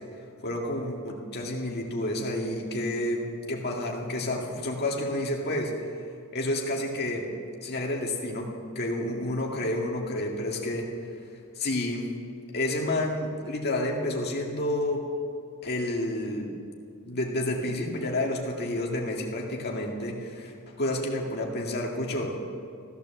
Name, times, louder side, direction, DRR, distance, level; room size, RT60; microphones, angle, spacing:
voice 1, 0.4-5.7 6.3-7.3 7.6-8.5 8.8-10.9 11.6-12.1 12.5-15.0 15.6-16.5 17.1-22.4, left 1 dB, 45° left, 0 dB, 2.0 m, -30 dB
15.0 x 12.0 x 7.2 m, 2.3 s
head